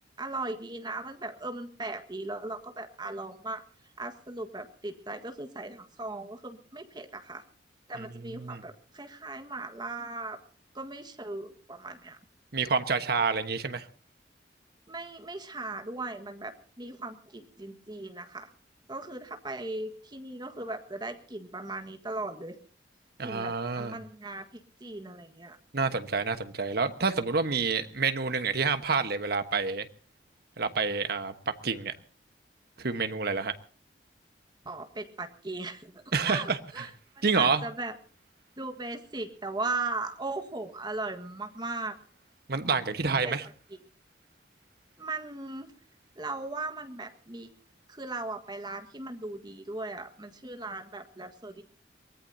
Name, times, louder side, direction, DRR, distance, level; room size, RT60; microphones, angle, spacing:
voice 1, 0.2-3.6 4.0-7.4 7.9-10.4 10.7-12.2 14.9-18.5 18.9-22.5 23.2-25.6 34.6-35.9 36.2-36.9 37.1-37.9 38.6-41.9 43.2-43.3 45.0-45.7 46.2-47.5 47.9-51.6, right 2 dB, 25° right, 1.6 m, -38 dB
voice 2, 7.9-8.6 12.5-13.9 23.2-24.0 25.7-29.9 30.6-31.9 32.8-33.5 36.1-36.8 37.2-37.6 42.5-43.5, right 4 dB, 60° right, 1.2 m, -28 dB
23.0 x 18.5 x 2.8 m
head